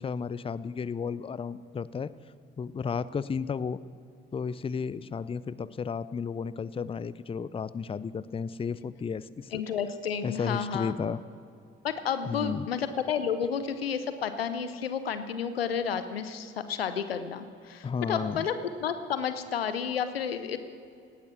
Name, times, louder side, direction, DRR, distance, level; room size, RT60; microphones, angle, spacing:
voice 1, 0.0-2.1 2.6-3.8 4.3-9.6 10.2-11.2 12.3-12.7 17.8-18.5, left 6 dB, 20° left, 18 dB, 0.5 m, -33 dB
voice 2, 9.5-10.9 11.8-18.5 18.8-20.6, left 7 dB, 85° left, 11 dB, 0.6 m, -31 dB
17.5 x 10.0 x 6.1 m, 2.4 s
figure-of-eight pair, 40°, 29 cm